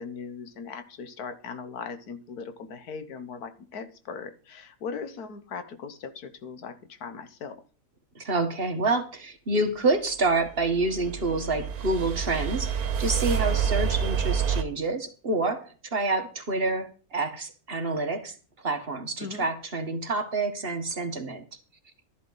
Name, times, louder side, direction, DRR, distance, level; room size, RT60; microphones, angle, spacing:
voice 1, 0.0-7.6 19.2-19.5, left 5 dB, 90° left, 10 dB, 1.6 m, -39 dB
voice 2, 8.1-18.3 18.6-21.4, right 3 dB, 40° right, 7 dB, 1.5 m, -28 dB
sound 1, 10.4-14.6, right 7 dB, 75° right, 1.5 m, -28 dB
12.5 x 11.0 x 4.0 m, 0.37 s
omnidirectional pair, 1.6 m